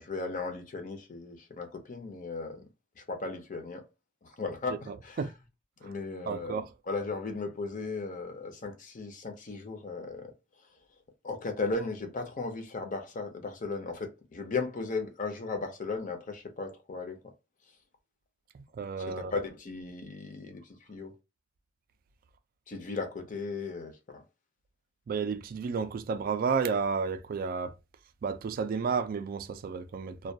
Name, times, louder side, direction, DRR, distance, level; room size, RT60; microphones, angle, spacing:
voice 1, 0.0-2.6 3.0-3.9 4.2-5.2 5.8-6.6 6.9-10.3 11.2-17.2 19.1-20.6 20.9-21.1 22.7-24.2, left 3 dB, 40° left, 0.6 m, -36 dB
voice 2, 4.9-5.3 5.8-5.9 6.3-6.7 18.5-19.3 25.1-27.7 28.2-30.3, right 5 dB, 45° right, 0.3 m, -32 dB
2.2 x 2.2 x 2.6 m
head